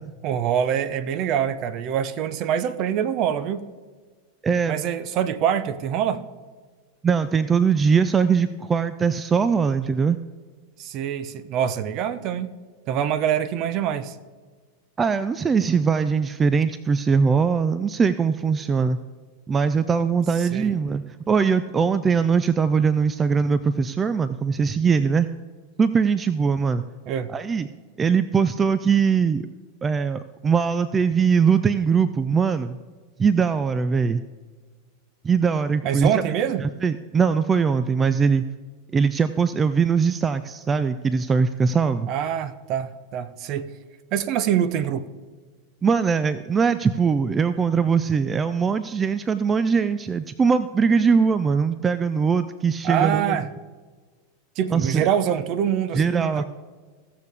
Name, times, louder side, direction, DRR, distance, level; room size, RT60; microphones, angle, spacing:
voice 1, 0.2-3.6 4.7-6.2 10.8-12.5 12.9-14.2 20.4-20.7 27.1-27.3 35.8-36.6 42.1-43.7 44.1-45.1 52.8-53.5 54.6-56.4, right 9 dB, 50° right, 0.7 m, -25 dB
voice 2, 4.4-4.8 7.0-10.2 15.0-19.0 19.5-25.3 25.8-26.8 27.3-27.7 28.0-29.5 29.8-32.8 33.2-34.2 35.2-36.2 36.6-38.4 38.9-42.1 45.8-53.4 54.7-55.1 55.9-56.4, right 5 dB, 20° right, 0.4 m, -21 dB
16.5 x 6.7 x 3.5 m
hypercardioid pair, 105°, 0 cm